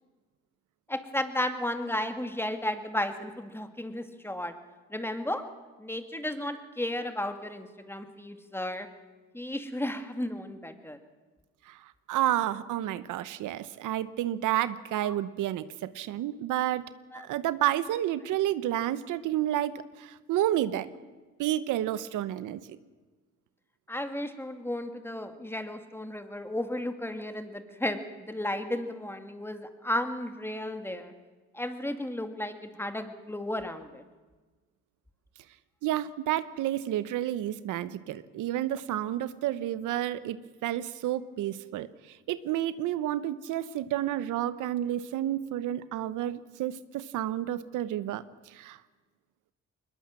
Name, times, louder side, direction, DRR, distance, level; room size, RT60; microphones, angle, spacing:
voice 1, 0.9-4.5 4.9-5.4 5.8-8.9 9.3-11.0 15.0-15.2 17.1-17.2 23.9-31.1 31.5-34.0, left 1 dB, 10° left, 8 dB, 2.1 m, -34 dB
voice 2, 11.7-16.9 17.1-20.9 21.4-22.6 35.8-48.8, right 12 dB, 85° right, 14 dB, 1.0 m, -30 dB
22.0 x 20.5 x 7.6 m, 1.3 s
cardioid pair, 90°, 30 cm